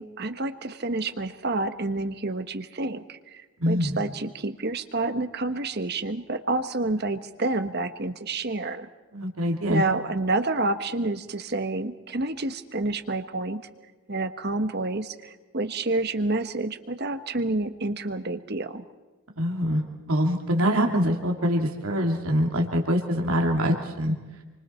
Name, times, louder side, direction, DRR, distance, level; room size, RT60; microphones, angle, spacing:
voice 1, 0.0-8.9 9.7-13.6 14.1-18.8, right 2 dB, 50° right, 9 dB, 1.3 m, -29 dB
voice 2, 3.6-4.0 9.1-9.8 19.4-19.8 20.1-24.1, equal, 80° right, 1 dB, 2.8 m, -24 dB
28.5 x 25.5 x 4.5 m, 1.2 s
head